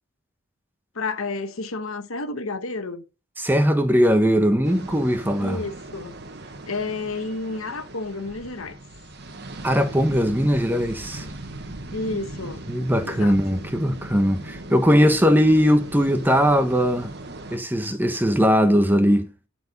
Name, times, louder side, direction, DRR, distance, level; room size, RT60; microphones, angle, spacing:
voice 1, 0.9-3.0 5.4-6.1 6.7-8.8 11.9-12.6 13.0-13.4, left 3 dB, 85° left, 1.3 m, -31 dB
voice 2, 3.4-5.6 9.6-11.3 12.7-17.1 17.5-19.3, equal, 10° right, 1.1 m, -20 dB
sound 1, 4.6-17.6, right 2 dB, 50° right, 1.5 m, -38 dB
12.5 x 4.7 x 6.6 m
head